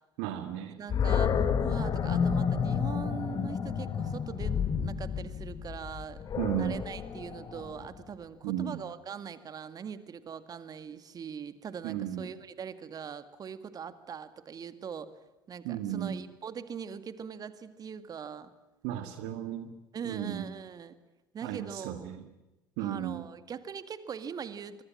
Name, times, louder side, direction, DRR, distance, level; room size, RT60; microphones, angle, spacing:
voice 1, 0.2-0.8 6.4-6.8 8.4-8.8 11.8-12.3 15.6-16.2 18.8-19.7 20.1-20.5 21.4-22.3 22.8-23.3, right 11 dB, 60° right, 9 dB, 1.9 m, -34 dB
voice 2, 0.8-6.2 6.5-15.1 15.5-18.5 19.9-21.0 21.3-22.1 22.8-24.8, right 7 dB, 35° right, 12 dB, 2.0 m, -41 dB
Animal, 0.9-8.0, left 7 dB, 40° left, 2.4 m, -30 dB
25.0 x 24.5 x 7.5 m, 1.0 s
figure-of-eight pair, 60°, 11 cm